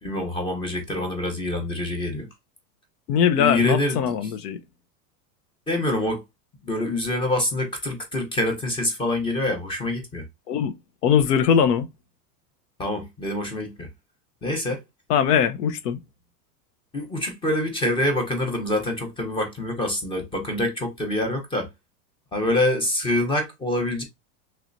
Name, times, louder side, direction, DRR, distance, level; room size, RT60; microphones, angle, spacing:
voice 1, 0.0-2.3 3.4-4.0 5.7-6.2 6.6-10.2 12.8-13.9 14.4-14.8 16.9-21.7 22.3-24.0, left 1 dB, 10° left, 0.7 m, -25 dB
voice 2, 3.1-4.6 10.5-10.7 11.0-11.9 15.1-16.0, left 8 dB, 90° left, 0.8 m, -21 dB
3.2 x 3.0 x 2.5 m
supercardioid pair, 150°, 46 cm